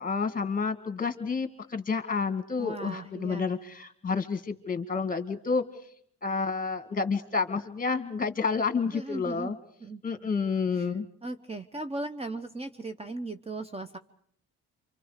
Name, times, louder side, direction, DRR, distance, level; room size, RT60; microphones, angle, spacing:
voice 1, 0.0-5.6 6.2-9.6 10.0-11.1, left 5 dB, 30° left, 9 dB, 1.9 m, -29 dB
voice 2, 2.6-3.5 8.9-9.5 9.8-10.3 10.7-10.9 11.2-14.0, right 2 dB, 20° right, 9 dB, 0.9 m, -37 dB
27.5 x 25.5 x 5.0 m, 0.64 s
cardioid pair, 90°, 30 cm